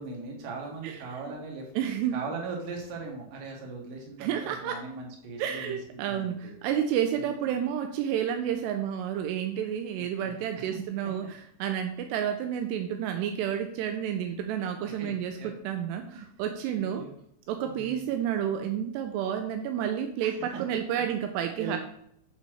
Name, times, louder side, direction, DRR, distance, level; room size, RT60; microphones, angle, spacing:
voice 1, 0.0-1.7 2.1-5.8 6.1-6.5 7.1-7.5 10.0-10.8 14.8-15.5 16.1-16.3 16.7-17.1 17.6-18.0 20.5-20.6 21.6-21.8, right 4 dB, 60° right, 0 dB, 2.5 m, -39 dB
voice 2, 1.8-2.2 4.2-4.8 5.4-17.1 17.5-21.8, right 9 dB, 85° right, 5 dB, 2.4 m, -30 dB
7.6 x 4.1 x 4.6 m, 0.70 s
omnidirectional pair, 5.3 m